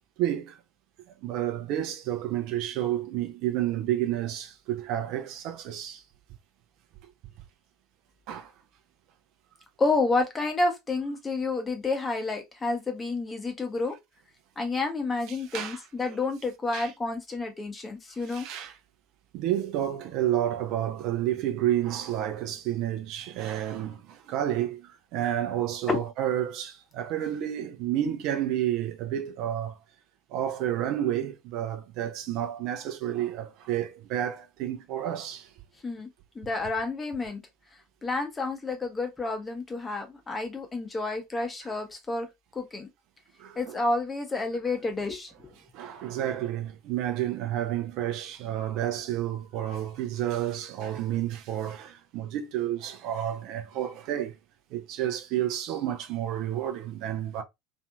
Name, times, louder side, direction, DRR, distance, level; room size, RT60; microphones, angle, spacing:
voice 1, 0.2-0.6 1.2-6.0 8.3-8.5 15.3-15.8 16.1-16.2 16.7-16.9 18.3-18.8 19.3-24.8 25.1-29.8 30.3-35.5 41.6-41.7 43.4-43.8 45.7-54.3 54.7-57.4, right 12 dB, 50° right, 0.5 m, -30 dB
voice 2, 9.8-14.0 14.6-18.5 25.9-26.1 35.8-36.1 36.3-37.4 38.0-42.3 42.5-42.9 43.6-45.5, left 3 dB, 20° left, 0.9 m, -30 dB
2.6 x 2.5 x 2.3 m
figure-of-eight pair, 70°, 0 cm